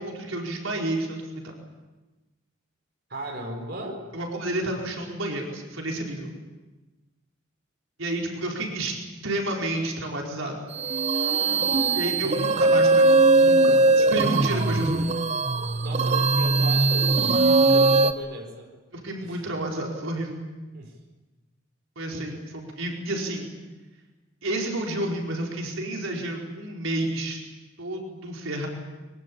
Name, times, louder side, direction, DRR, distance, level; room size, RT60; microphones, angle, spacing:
voice 1, 0.0-1.5 4.1-6.3 8.0-9.0 9.2-10.7 11.9-14.9 18.9-20.4 22.0-23.5 24.4-27.4 27.8-28.7, right 1 dB, 80° right, 0 dB, 4.8 m, -30 dB
voice 2, 3.1-4.0 15.8-18.7 19.2-19.4 20.7-20.9, right 1 dB, 50° right, 2 dB, 4.7 m, -37 dB
sound 1, 10.8-18.1, right 3 dB, 35° right, 0.8 m, -20 dB
23.5 x 22.5 x 8.7 m, 1.2 s
head